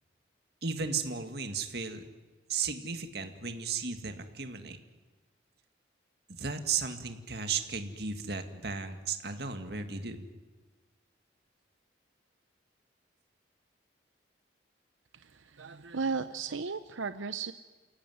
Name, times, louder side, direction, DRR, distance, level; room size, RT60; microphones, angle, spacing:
voice 1, 0.6-2.1 2.5-4.8 6.3-10.3, right 5 dB, 55° right, 7 dB, 2.2 m, -35 dB
voice 2, 15.1-17.5, right 5 dB, 90° right, 11 dB, 0.8 m, -35 dB
29.0 x 17.5 x 9.5 m, 1.2 s
head